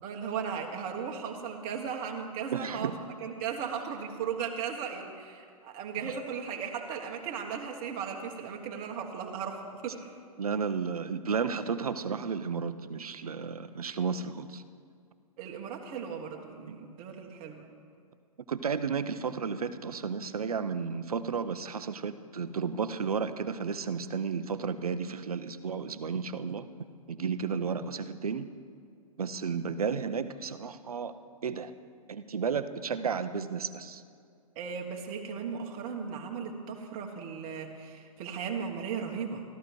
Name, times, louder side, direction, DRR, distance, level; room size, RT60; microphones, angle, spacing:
voice 1, 0.0-2.9 3.2-10.1 15.4-17.7 34.5-39.4, right 6 dB, 35° right, 2 dB, 1.4 m, -36 dB
voice 2, 2.5-2.9 10.4-14.6 16.7-16.8 18.5-26.7 27.1-28.5 29.2-31.1 31.4-31.7 32.1-34.0, right 6 dB, 75° right, 12 dB, 0.7 m, -33 dB
14.0 x 13.5 x 4.7 m, 2.3 s
figure-of-eight pair, 110°, 19 cm